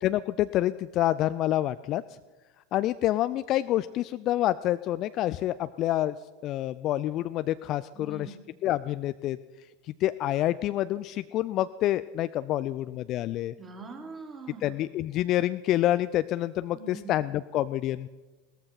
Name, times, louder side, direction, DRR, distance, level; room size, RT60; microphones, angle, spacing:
voice 1, 0.0-2.0 2.7-6.1 6.4-8.3 8.6-9.4 9.8-13.5 14.6-18.1, left 14 dB, 40° left, 14 dB, 0.4 m, -27 dB
voice 2, 7.9-8.5 13.6-14.9 16.7-17.2, right 4 dB, 20° right, 0 dB, 3.7 m, -43 dB
17.0 x 14.0 x 5.8 m, 1.2 s
figure-of-eight pair, 80°, 0 cm